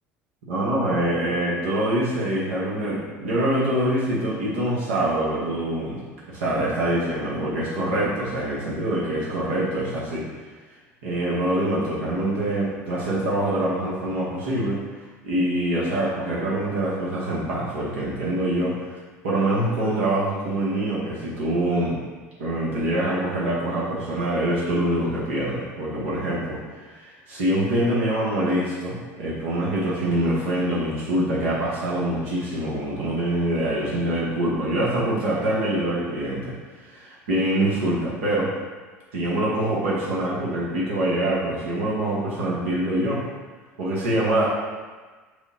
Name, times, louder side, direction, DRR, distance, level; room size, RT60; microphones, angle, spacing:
voice 1, 0.5-10.3 11.0-14.8 15.2-19.0 19.2-22.0 22.4-36.5 36.9-38.5 39.1-43.2 43.8-44.5, right 1 dB, 80° right, -6 dB, 1.0 m, -25 dB
4.9 x 2.2 x 4.1 m, 1.4 s
hypercardioid pair, 75°, 7 cm